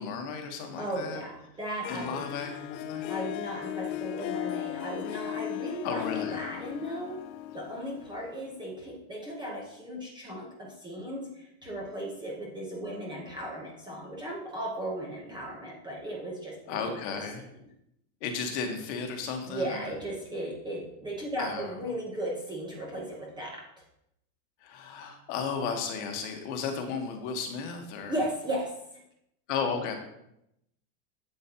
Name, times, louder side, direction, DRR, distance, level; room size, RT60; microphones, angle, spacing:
voice 1, 0.0-1.2 1.9-3.1 5.8-6.4 16.7-17.5 18.2-19.9 21.4-21.7 24.6-28.2 29.5-30.0, left 5 dB, 45° left, 4 dB, 1.4 m, -34 dB
voice 2, 0.8-2.2 3.1-7.2 7.5-17.2 19.5-23.6 28.0-28.7, right 1 dB, 10° right, -3 dB, 1.0 m, -36 dB
Harp, 1.8-8.7, left 13 dB, 90° left, 0.6 m, -37 dB
9.1 x 8.0 x 2.9 m, 0.80 s
supercardioid pair, 165°, 49 cm